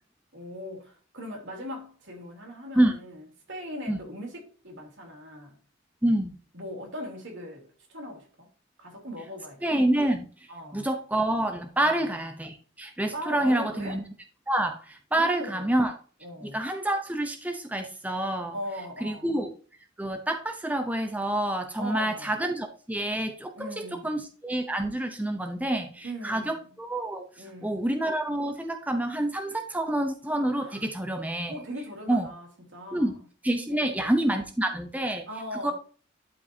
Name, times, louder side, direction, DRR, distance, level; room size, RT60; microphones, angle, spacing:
voice 1, 0.3-3.2 3.5-5.5 6.5-8.5 8.8-9.7 10.5-10.9 11.8-12.1 13.1-14.0 15.1-15.7 16.2-16.6 18.5-19.3 21.8-22.4 23.5-24.2 26.0-26.6 27.4-27.9 30.6-30.9 31.5-33.3 33.7-34.1 35.3-35.7, equal, 70° right, 3.3 m, -39 dB
voice 2, 6.0-6.3 9.6-10.3 10.7-14.0 14.5-16.0 16.4-18.5 19.0-19.5 20.0-31.6 32.1-32.3 32.9-33.1 33.4-35.3 35.6-35.7, right 1 dB, 10° right, 0.7 m, -27 dB
11.5 x 5.2 x 2.8 m
head